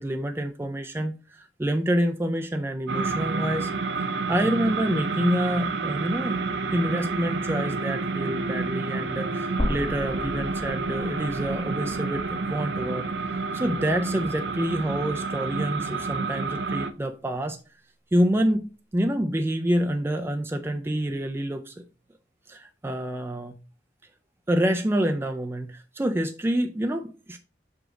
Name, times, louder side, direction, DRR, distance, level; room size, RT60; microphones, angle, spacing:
voice 1, 0.0-3.7 4.3-6.4 6.7-13.1 13.5-17.6 18.1-18.6 18.9-21.8 22.5-23.6 24.5-27.4, equal, 15° right, 0.4 m, -27 dB
sound 1, 2.9-16.9, right 4 dB, 75° right, 0.6 m, -29 dB
sound 2, 9.6-13.7 14.1-14.2 15.6-15.7, equal, 35° left, 1.3 m, -35 dB
6.1 x 4.9 x 3.7 m
head